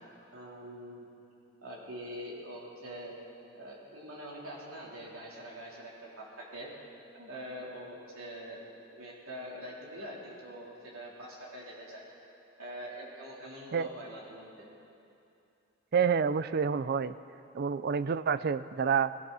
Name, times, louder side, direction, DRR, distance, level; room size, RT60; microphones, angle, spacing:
voice 1, 0.3-1.1 1.6-3.1 3.5-6.7 7.1-8.6 8.9-12.0 12.6-14.7, equal, 85° right, -4 dB, 3.5 m, -44 dB
voice 2, 15.9-17.1 17.5-19.1, right 6 dB, 50° right, 15 dB, 0.4 m, -28 dB
19.5 x 16.0 x 4.1 m, 2.7 s
head